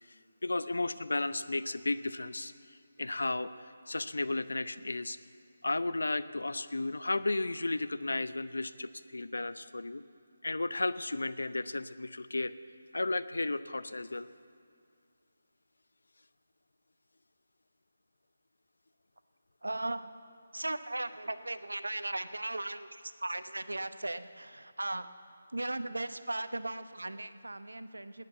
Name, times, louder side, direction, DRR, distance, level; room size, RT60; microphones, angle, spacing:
voice 1, 0.1-5.2 5.6-10.0 10.4-12.5 12.9-14.3, left 2 dB, 75° left, 13 dB, 0.6 m, -34 dB
voice 2, 19.6-20.1 20.5-25.1 25.5-28.2, right 2 dB, 80° right, 12 dB, 0.8 m, -37 dB
19.0 x 9.3 x 8.1 m, 2.2 s
figure-of-eight pair, 155°, 0 cm